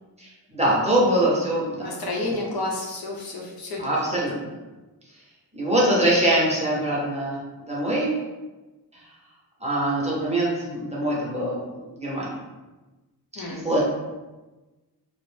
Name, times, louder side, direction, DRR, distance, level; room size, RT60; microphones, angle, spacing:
voice 1, 0.2-1.9 2.3-2.4 3.8-4.4 5.5-8.1 9.6-11.6 12.0-12.4 13.3-13.8, right 1 dB, 15° right, -6 dB, 0.6 m, -23 dB
voice 2, 1.8-3.8 4.1-4.2 13.4-13.7, left 2 dB, 65° left, -2 dB, 0.7 m, -30 dB
2.5 x 2.1 x 3.1 m, 1.1 s
wide cardioid pair, 135°, 39 cm